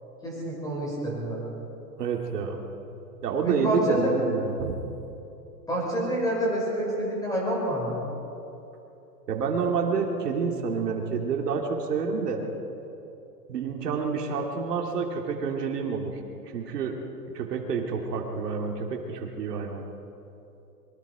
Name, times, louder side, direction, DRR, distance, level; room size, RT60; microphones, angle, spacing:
voice 1, 0.2-1.4 3.4-4.1 5.7-8.0, right 1 dB, 5° left, -4 dB, 6.2 m, -27 dB
voice 2, 2.0-2.6 3.2-4.7 9.3-12.4 13.5-16.2 16.5-17.0 17.3-19.9, right 5 dB, 75° right, 2 dB, 2.8 m, -28 dB
23.5 x 23.5 x 5.0 m, 2.9 s
hypercardioid pair, 160°, 48 cm